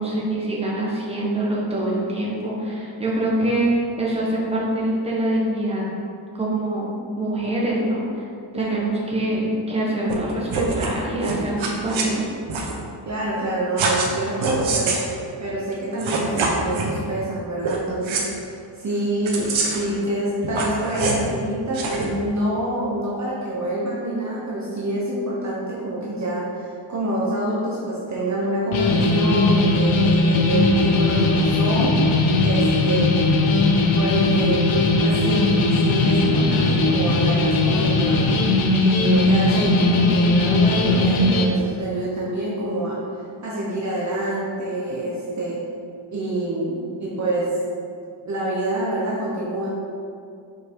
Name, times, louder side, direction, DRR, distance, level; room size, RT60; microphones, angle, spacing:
voice 1, 0.0-5.9 6.4-8.2 8.5-12.3, right 1 dB, 10° right, -5 dB, 1.4 m, -24 dB
sound 1, 10.1-10.2 10.5-10.9 11.2-12.0 12.5-12.7 13.8-14.1 14.4-15.1 15.7-15.8 16.0-16.9 17.6-17.8 18.0-18.2 19.2-19.9 20.4-21.3 21.7-22.0, right 4 dB, 70° right, 1.2 m, -25 dB
voice 2, 13.0-14.9 15.4-33.3 33.9-34.7 35.0-38.3 38.8-45.6 46.1-47.5 48.3-49.7, right 1 dB, 35° right, -6 dB, 1.1 m, -26 dB
sound 2, 28.7-41.5, left 2 dB, 70° left, 1.0 m, -19 dB
5.8 x 5.3 x 4.7 m, 2.4 s
wide cardioid pair, 145°, 48 cm